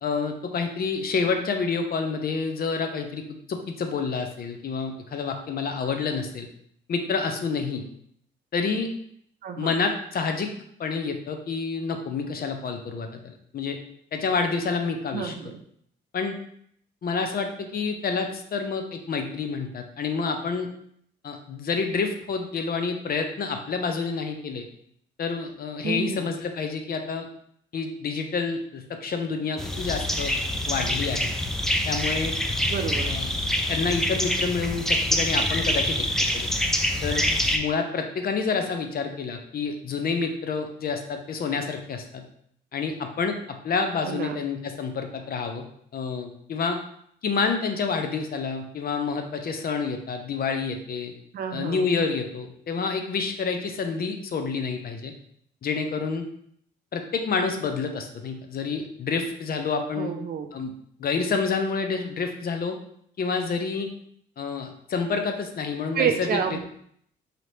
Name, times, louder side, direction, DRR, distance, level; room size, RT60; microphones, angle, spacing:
voice 1, 0.0-3.2 3.5-6.5 6.9-7.8 8.5-8.9 9.6-10.5 10.8-13.8 14.1-15.3 16.1-16.3 17.0-20.7 21.2-24.7 25.2-27.3 27.7-30.3 30.7-31.3 31.9-32.3 33.1-33.3 33.7-36.1 36.3-36.5 37.0-37.2 37.5-42.2 42.7-45.6 45.9-46.8 47.2-51.1 51.5-55.1 55.6-56.2 56.9-60.2 60.5-60.7 61.0-62.8 63.2-63.9 64.4-66.4, left 5 dB, 50° left, 5 dB, 0.6 m, -28 dB
voice 2, 9.4-9.7 15.1-15.6 25.8-26.3 32.7-33.2 44.0-44.4 51.3-51.9 60.0-60.5 65.9-66.6, right 7 dB, 50° right, 6 dB, 0.5 m, -29 dB
sound 1, 29.6-37.6, left 1 dB, ahead, 0.4 m, -25 dB
4.1 x 2.8 x 3.2 m, 0.67 s
cardioid pair, 90°, 20 cm